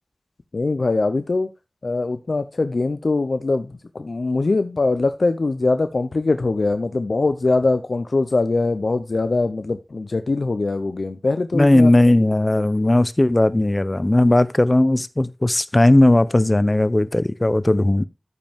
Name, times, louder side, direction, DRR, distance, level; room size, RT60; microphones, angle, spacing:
voice 1, 0.5-1.5 1.8-11.9, left 3 dB, 90° left, 0.6 m, -22 dB
voice 2, 11.5-18.0, left 1 dB, 40° left, 0.6 m, -17 dB
13.5 x 5.4 x 3.5 m
wide cardioid pair, 50°, 0 cm